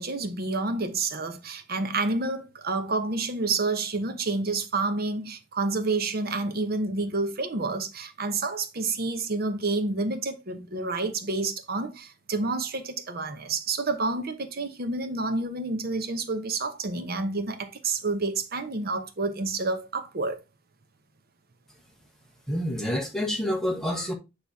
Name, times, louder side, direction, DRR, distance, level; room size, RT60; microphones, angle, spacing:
voice 1, 0.0-20.4, right 3 dB, 55° right, 1.0 m, -29 dB
voice 2, 22.5-24.1, equal, ahead, 1.4 m, -28 dB
8.3 x 3.3 x 4.2 m
head